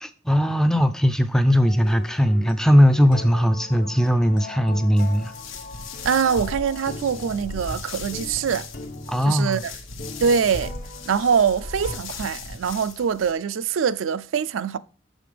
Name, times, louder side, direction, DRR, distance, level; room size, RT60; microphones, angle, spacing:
voice 1, 0.0-5.3 9.1-9.6, equal, 5° left, 0.4 m, -19 dB
sound 1, 1.6-12.0, left 2 dB, 40° left, 0.6 m, -40 dB
sound 2, 5.0-13.3, left 3 dB, 80° left, 1.1 m, -37 dB
voice 2, 6.0-8.7 9.3-9.7 10.2-10.7 11.1-14.8, right 6 dB, 75° right, 0.4 m, -23 dB
6.7 x 5.2 x 5.0 m
head